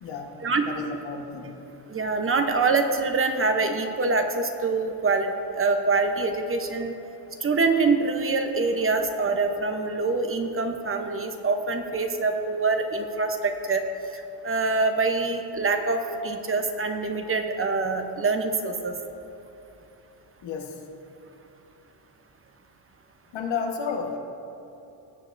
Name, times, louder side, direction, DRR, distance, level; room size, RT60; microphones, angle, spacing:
voice 1, 0.0-1.6 20.4-20.8 23.3-24.2, left 5 dB, 80° left, 2 dB, 1.4 m, -32 dB
voice 2, 1.9-6.9 7.4-13.8 14.4-18.9, right 3 dB, 30° right, 6 dB, 0.8 m, -25 dB
17.5 x 7.3 x 2.6 m, 3.0 s
cardioid pair, 110°, 44 cm